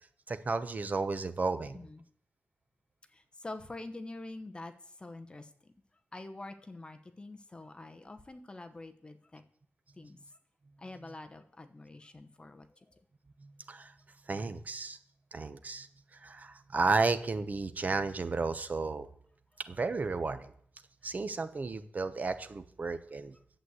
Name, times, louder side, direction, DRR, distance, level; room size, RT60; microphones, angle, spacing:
voice 1, 0.3-1.8 13.4-13.9 14.3-15.0 15.3-15.9 16.2-19.1 19.7-20.5 21.0-23.3, right 3 dB, 35° right, 10 dB, 1.0 m, -33 dB
voice 2, 1.7-2.0 3.1-5.7 6.1-9.4 10.0-10.2 10.8-13.0, left 2 dB, 20° left, 7 dB, 1.0 m, -46 dB
11.0 x 8.2 x 8.1 m, 0.63 s
wide cardioid pair, 140°, 4 cm